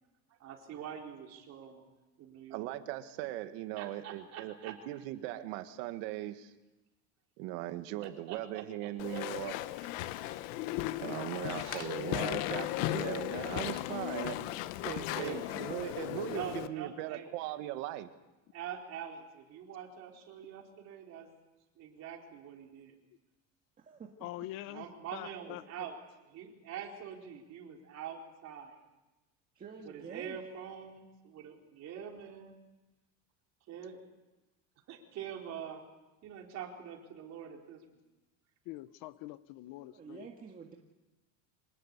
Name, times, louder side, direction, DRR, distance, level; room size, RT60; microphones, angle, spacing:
voice 1, 0.4-1.8 2.2-2.7 3.8-4.8 8.0-8.6 9.1-9.2 11.6-11.9 15.1-15.4 16.3-17.3 18.5-21.3 21.8-22.9 24.7-26.0 26.3-28.8 29.8-32.5 33.7-34.0 34.9-35.8 36.2-37.8, right 8 dB, 45° right, 4.2 m, -44 dB
voice 2, 2.5-6.5 7.4-9.6 11.0-14.4 14.8-18.1, right 15 dB, 90° right, 1.9 m, -39 dB
Walk footsteps / Chatter / Squeak, 9.0-16.7, left 15 dB, 85° left, 1.2 m, -36 dB
voice 3, 13.7-14.1 23.8-24.2 29.6-30.4 39.9-40.7, right 6 dB, 25° right, 1.8 m, -49 dB
voice 4, 24.2-24.9 25.1-25.9 38.7-40.3, left 16 dB, 60° left, 0.9 m, -44 dB
25.5 x 19.0 x 8.3 m
cardioid pair, 165°, 37 cm